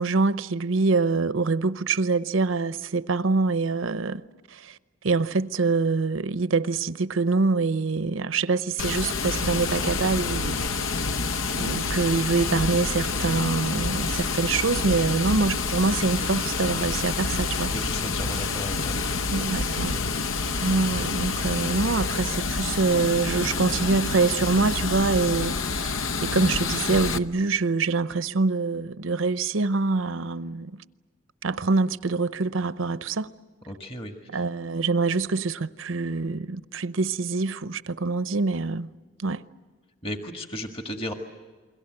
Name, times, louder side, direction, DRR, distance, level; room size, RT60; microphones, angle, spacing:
voice 1, 0.0-4.2 4.5-4.8 5.0-10.6 11.6-17.7 19.3-20.0 20.6-30.8 31.4-33.3 34.3-38.9 39.2-39.4, right 3 dB, 90° right, 0.8 m, -25 dB
Water, 8.8-27.2, left 4 dB, 90° left, 0.9 m, -28 dB
voice 2, 17.7-19.0 19.3-19.5 33.7-34.4 40.0-41.1, left 1 dB, 30° left, 1.6 m, -35 dB
29.0 x 22.5 x 7.8 m
head